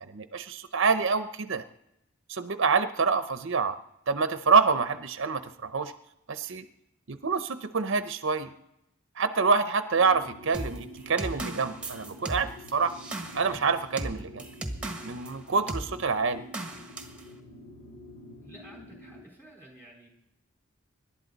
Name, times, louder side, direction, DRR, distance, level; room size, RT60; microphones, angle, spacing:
voice 1, 0.0-1.6 2.3-3.8 4.1-5.9 6.3-6.6 7.1-8.5 9.2-12.9 13.3-14.5 14.8-16.4, right 5 dB, 60° right, 10 dB, 0.7 m, -27 dB
sound 1, 9.9-19.2, left 1 dB, 70° left, 7.1 m, -48 dB
sound 2, 10.5-15.3 15.7-15.9 16.5-17.2, right 2 dB, 5° right, 1.4 m, -36 dB
voice 2, 18.4-20.1, right 1 dB, 10° left, -2 dB, 4.2 m, -51 dB
26.5 x 12.0 x 4.0 m, 0.84 s
head